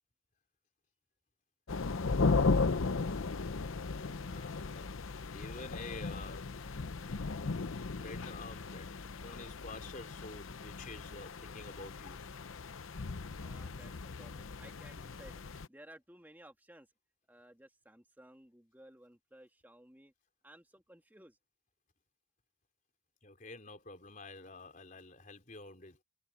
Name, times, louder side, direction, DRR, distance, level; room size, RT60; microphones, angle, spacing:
sound 1, 1.7-15.7, left 3 dB, 80° left, 0.7 m, -36 dB
voice 1, 4.3-6.6 8.0-8.9 9.2-12.2 23.2-26.0, left 3 dB, 40° left, 3.9 m, -49 dB
voice 2, 13.3-16.9 17.3-20.1 20.4-21.4, right 1 dB, 10° right, 2.3 m, -57 dB
head